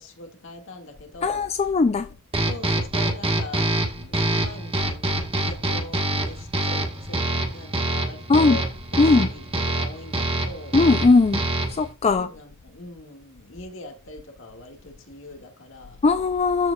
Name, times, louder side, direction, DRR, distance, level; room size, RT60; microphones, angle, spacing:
voice 1, 0.0-2.2 2.4-10.8 12.1-16.0, left 2 dB, 65° left, 2.0 m, -42 dB
voice 2, 1.2-2.1 8.3-8.6 9.0-9.3 10.7-11.4 11.7-12.3 16.0-16.7, left 3 dB, 30° left, 0.3 m, -19 dB
sound 1, 2.3-11.9, right 1 dB, 25° right, 1.4 m, -26 dB
13.5 x 5.0 x 2.3 m
head